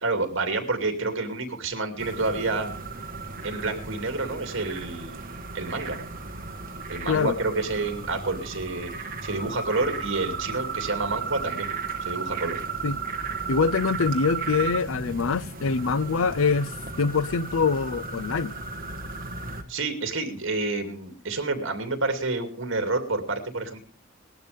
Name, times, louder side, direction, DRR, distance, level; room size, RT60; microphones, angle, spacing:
voice 1, 0.0-2.7 3.4-5.2 5.5-6.0 6.9-11.7 12.0-12.6 19.7-23.8, right 3 dB, 65° right, 2.6 m, -29 dB
sound 1, 2.0-19.6, right 4 dB, 45° right, 1.6 m, -35 dB
voice 2, 13.5-16.7 17.0-18.5, left 5 dB, 80° left, 0.6 m, -24 dB
19.5 x 12.0 x 3.5 m
head